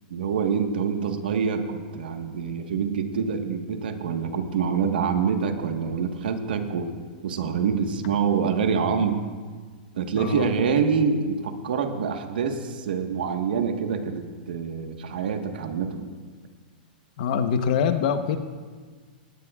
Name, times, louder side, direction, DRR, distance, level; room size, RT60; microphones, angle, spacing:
voice 1, 0.1-6.9 7.2-9.2 9.9-16.1, right 6 dB, 80° right, 5 dB, 1.5 m, -26 dB
voice 2, 10.1-10.5 17.2-18.4, left 7 dB, 55° left, 8 dB, 1.1 m, -24 dB
19.0 x 18.0 x 2.5 m, 1.5 s
hypercardioid pair, 150°, 5 cm